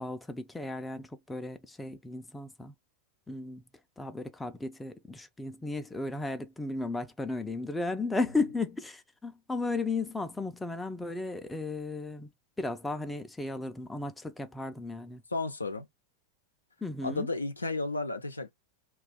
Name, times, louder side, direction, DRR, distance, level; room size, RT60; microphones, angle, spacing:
voice 1, 0.0-2.7 3.3-3.6 4.0-12.3 12.6-15.2 16.8-17.3, left 3 dB, 5° left, 0.4 m, -35 dB
voice 2, 15.3-15.9 17.0-18.5, left 3 dB, 80° left, 0.5 m, -33 dB
2.5 x 2.3 x 3.5 m
figure-of-eight pair, 90°, 0 cm